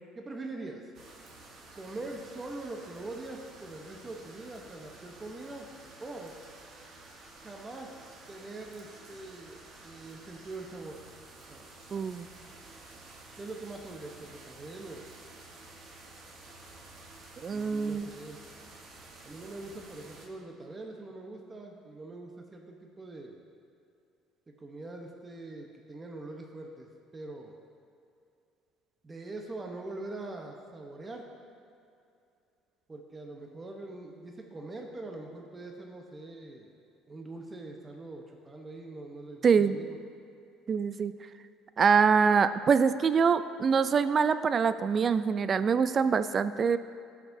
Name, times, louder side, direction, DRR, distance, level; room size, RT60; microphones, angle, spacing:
voice 1, 0.1-0.8 1.7-5.7 6.0-6.3 7.4-7.9 8.3-11.0 11.5-11.6 13.4-15.1 17.5-18.4 19.2-23.4 24.5-27.5 29.0-31.3 32.9-36.7 37.1-40.0, right 2 dB, 25° right, 1 dB, 0.9 m, -43 dB
sound 1, 0.9-20.3, right 2 dB, 55° right, 1.3 m, -51 dB
voice 2, 11.9-12.3 17.4-18.1 39.4-39.7 40.7-41.1 41.8-46.8, right 6 dB, 40° right, 13 dB, 0.3 m, -24 dB
15.0 x 5.8 x 2.7 m, 2.6 s
supercardioid pair, 90°, 0 cm